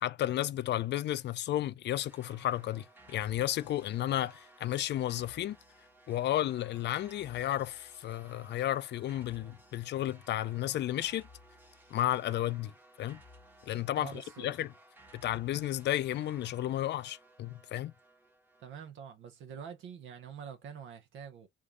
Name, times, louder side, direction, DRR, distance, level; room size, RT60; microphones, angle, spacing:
voice 1, 0.0-5.6 6.1-11.3 11.9-12.7 13.0-13.2 13.6-14.7 15.1-17.9, left 13 dB, 60° left, 0.4 m, -33 dB
sound 1, 2.0-18.9, right 1 dB, 10° right, 0.9 m, -58 dB
voice 2, 13.9-14.5 18.6-21.5, right 7 dB, 75° right, 0.7 m, -46 dB
3.6 x 2.3 x 3.7 m
cardioid pair, 90°, 20 cm